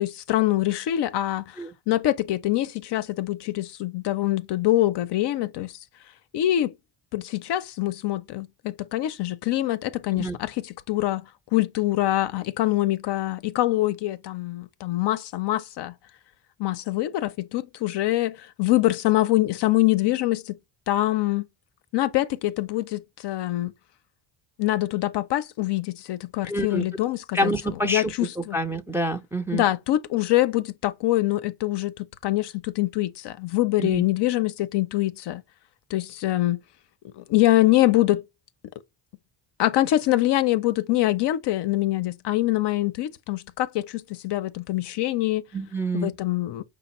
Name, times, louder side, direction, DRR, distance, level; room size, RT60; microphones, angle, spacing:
voice 1, 0.0-5.8 6.3-6.7 7.1-11.3 11.5-15.9 16.6-20.6 20.9-21.5 21.9-23.7 24.6-27.5 27.8-28.6 29.5-35.4 35.9-36.6 37.1-38.2 39.6-45.4 45.9-46.6, left 15 dB, 55° left, 0.5 m, -24 dB
voice 2, 26.4-26.8 27.3-28.1 28.5-29.6 33.8-34.0 45.5-46.1, right 1 dB, 5° right, 0.4 m, -27 dB
5.0 x 2.0 x 4.1 m
supercardioid pair, 75°, 50 cm